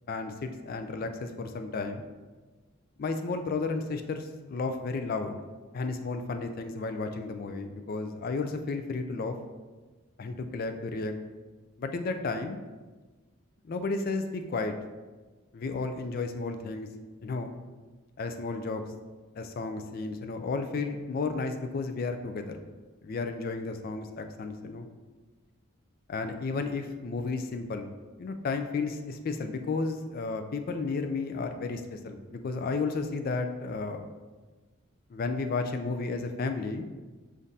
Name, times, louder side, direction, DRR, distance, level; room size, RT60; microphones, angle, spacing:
voice 1, 0.1-2.1 3.0-5.4 5.7-9.4 10.2-11.1 11.8-12.6 13.7-14.7 15.5-16.9 17.2-17.5 18.2-18.8 19.4-22.6 23.0-24.9 26.1-27.9 28.2-34.1 35.1-36.9, left 3 dB, 45° left, 7 dB, 0.3 m, -33 dB
7.0 x 2.6 x 2.7 m, 1.3 s
head